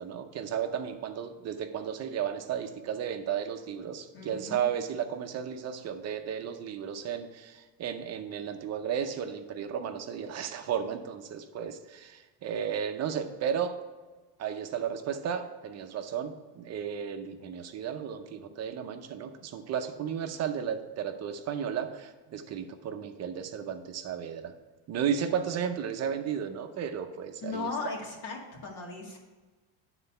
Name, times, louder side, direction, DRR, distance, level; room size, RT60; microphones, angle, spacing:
voice 1, 0.0-13.8 14.4-24.5 24.9-27.7, right 8 dB, 35° right, 7 dB, 0.7 m, -34 dB
voice 2, 4.1-4.6 27.4-29.2, left 3 dB, 50° left, -1 dB, 2.1 m, -37 dB
9.3 x 4.0 x 5.5 m, 1.3 s
cardioid pair, 130°, 47 cm